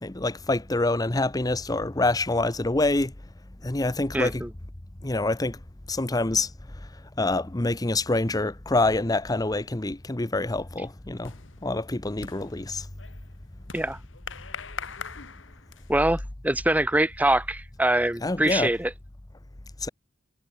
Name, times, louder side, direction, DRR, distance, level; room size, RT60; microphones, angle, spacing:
voice 1, 0.0-3.1 3.6-4.4 5.0-5.6 5.9-6.5 7.2-11.3 11.6-12.8 18.2-18.7 19.8-19.9, left 2 dB, 20° left, 0.8 m, -26 dB
voice 2, 4.1-4.5 13.7-14.0 15.9-18.9, right 1 dB, 10° right, 0.9 m, -24 dB
sound 1, 9.8-10.0 10.3-16.1, left 6 dB, 85° left, 1.9 m, -42 dB
head